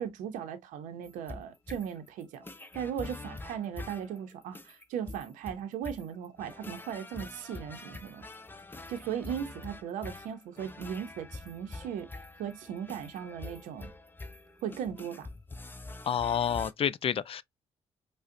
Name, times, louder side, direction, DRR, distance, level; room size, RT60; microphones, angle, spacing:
voice 1, 0.0-2.4 2.7-8.3 8.9-12.1 12.4-13.9 14.6-15.3, right 8 dB, 80° right, 0.6 m, -37 dB
sound 1, 1.0-16.7, left 2 dB, 15° left, 0.7 m, -45 dB
voice 2, 16.1-17.4, left 8 dB, 45° left, 0.4 m, -29 dB
4.8 x 2.1 x 2.6 m
supercardioid pair, 55°, 13 cm